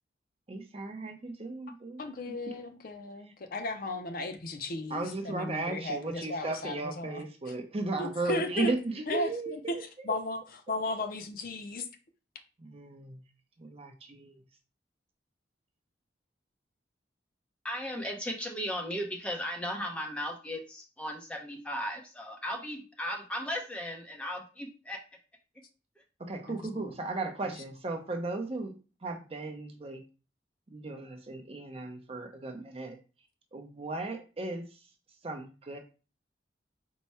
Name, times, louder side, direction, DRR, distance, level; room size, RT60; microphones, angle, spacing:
voice 1, 0.5-2.1 2.5-2.6 4.9-9.8 10.1-10.2 12.6-13.2 13.6-14.4 26.2-28.7 29.0-30.0 30.7-33.0 33.5-34.6 35.2-35.8, right 2 dB, 35° right, 0.6 m, -36 dB
voice 2, 2.0-7.2 7.5-7.6 8.0-8.7 9.1-9.8 10.0-10.4 10.7-11.9 26.5-26.9 27.5-27.6, left 2 dB, 50° left, 0.5 m, -35 dB
voice 3, 17.6-25.0, equal, 5° left, 0.7 m, -36 dB
4.5 x 2.2 x 4.2 m
head